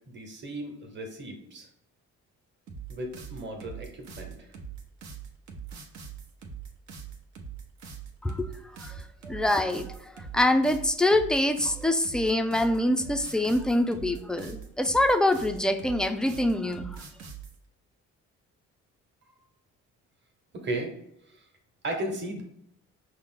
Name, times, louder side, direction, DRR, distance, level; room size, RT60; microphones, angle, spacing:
voice 1, 0.1-1.7 2.9-4.5 20.5-20.9 21.3-21.4 21.8-22.4, right 1 dB, 35° right, 2 dB, 1.2 m, -35 dB
sound 1, 2.7-17.6, right 7 dB, 65° right, 0.9 m, -42 dB
voice 2, 8.8-16.9, left 1 dB, 5° left, 8 dB, 0.3 m, -25 dB
5.3 x 2.0 x 3.6 m, 0.75 s
cardioid pair, 90°, 30 cm